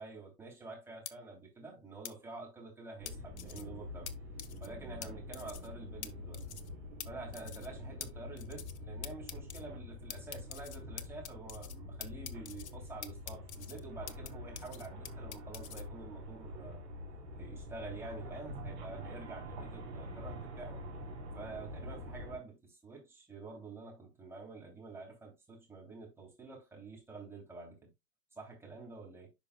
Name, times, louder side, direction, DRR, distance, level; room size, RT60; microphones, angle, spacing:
voice 1, 0.0-4.1 4.6-6.4 7.0-16.8 17.4-20.8 21.3-27.9 28.3-29.3, right 3 dB, 5° right, 3.0 m, -48 dB
sound 1, 1.1-1.2 2.0-2.1 3.1-3.6 4.1-4.2 4.4-4.7 5.0-5.1 5.3-5.7 6.0-6.1 6.3-6.7 7.0-7.1 7.3-7.7 8.0-8.1 8.4-8.8 9.0-9.6 10.1-11.8 12.0-12.7 13.0-14.3 14.6-15.8, left 9 dB, 45° left, 0.8 m, -45 dB
sound 2, 3.0-22.4, left 1 dB, 40° right, 3.5 m, -46 dB
10.5 x 5.3 x 2.2 m
figure-of-eight pair, 115°, 48 cm